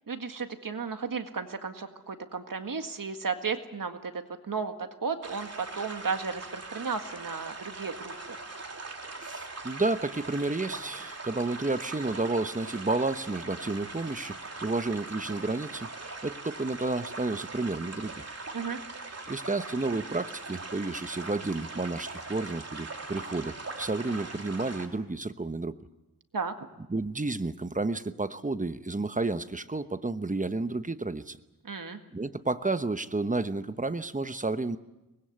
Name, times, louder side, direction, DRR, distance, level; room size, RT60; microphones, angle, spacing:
voice 1, 0.1-4.7 5.0-8.4 18.5-18.8 26.3-26.5 31.6-32.0, right 5 dB, 65° right, 6 dB, 1.9 m, -34 dB
sound 1, 5.2-24.9, right 3 dB, 45° right, 3.2 m, -41 dB
voice 2, 9.2-15.9 16.2-18.3 19.3-25.8 26.9-31.4 32.1-34.8, right 3 dB, 20° right, 11 dB, 1.0 m, -31 dB
24.0 x 20.0 x 8.1 m, 1.0 s
wide cardioid pair, 75°, 35 cm